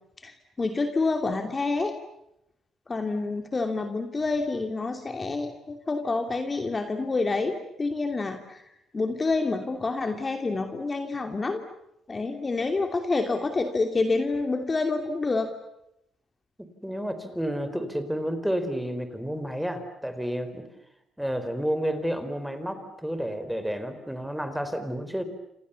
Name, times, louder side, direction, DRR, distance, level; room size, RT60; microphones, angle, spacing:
voice 1, 0.2-1.9 2.9-8.7 8.9-11.6 12.1-15.5, left 3 dB, 30° left, 6 dB, 2.8 m, -28 dB
voice 2, 16.6-20.7 21.2-25.2, equal, ahead, 9 dB, 4.3 m, -30 dB
29.0 x 27.5 x 7.1 m, 0.81 s
cardioid pair, 90°, 0 cm